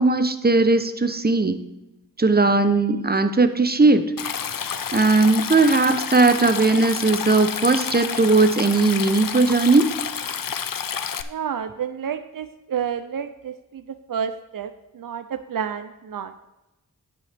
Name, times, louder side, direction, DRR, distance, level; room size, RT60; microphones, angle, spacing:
voice 1, 0.0-1.6 2.2-4.1 4.9-9.9, right 3 dB, 30° right, 10 dB, 0.8 m, -18 dB
Stream, 4.2-11.2, left 7 dB, 75° left, 0.6 m, -29 dB
voice 2, 11.2-16.5, right 7 dB, 75° right, 10 dB, 0.5 m, -30 dB
9.6 x 8.5 x 3.4 m, 0.97 s
wide cardioid pair, 65°, 34 cm